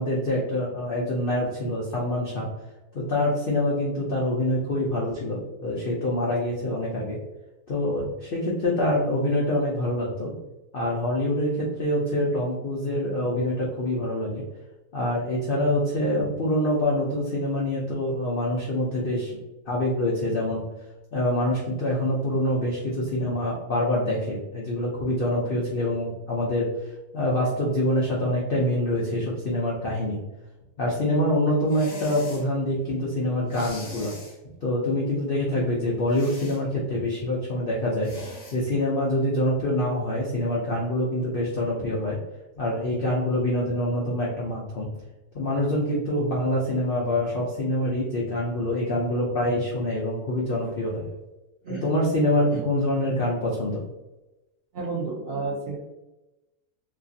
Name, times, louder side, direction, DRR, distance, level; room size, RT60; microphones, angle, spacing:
voice 1, 0.0-2.5 2.9-7.2 7.7-10.4 10.7-14.4 14.9-19.4 19.7-20.6 21.1-26.7 27.1-30.2 30.8-34.1 34.6-38.1 38.5-42.2 42.6-44.9 45.3-51.1 51.8-53.8, left 1 dB, 85° left, -4 dB, 0.5 m, -25 dB
sound 1, 31.7-32.5 33.5-34.4 36.1-36.6 38.0-38.6, left 2 dB, 55° left, 1.1 m, -41 dB
voice 2, 54.7-55.8, right 4 dB, 70° right, -5 dB, 0.6 m, -31 dB
3.0 x 2.4 x 2.6 m, 1.0 s
omnidirectional pair, 1.7 m